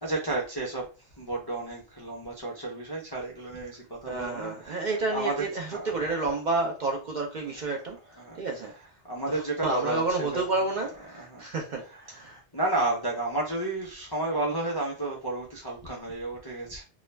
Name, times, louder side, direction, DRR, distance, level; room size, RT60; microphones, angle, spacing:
voice 1, 0.0-6.2 7.5-11.5 11.7-16.8, right 2 dB, 40° left, 0.3 m, -33 dB
voice 2, 4.1-8.7 9.3-12.4, right 3 dB, 55° right, 0.5 m, -30 dB
2.3 x 2.0 x 3.1 m
omnidirectional pair, 1.1 m